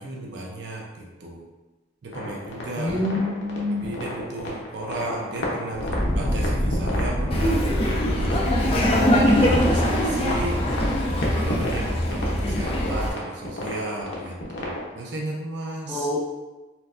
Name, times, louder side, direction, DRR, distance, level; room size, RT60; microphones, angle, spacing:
voice 1, 0.0-1.4 2.0-3.0 3.7-7.7 8.1-10.6 11.1-16.1, right 2 dB, 65° right, -1 dB, 0.5 m, -34 dB
sound 1, 2.1-14.9, left 1 dB, 85° left, 0.8 m, -33 dB
voice 2, 2.7-3.9 15.9-16.2, left 2 dB, ahead, -9 dB, 0.8 m, -26 dB
Fire, 5.7-10.9, equal, 40° right, 0.8 m, -28 dB
Laughter, 7.3-13.1, equal, 30° left, 0.4 m, -22 dB
4.4 x 2.2 x 2.5 m, 1.2 s
head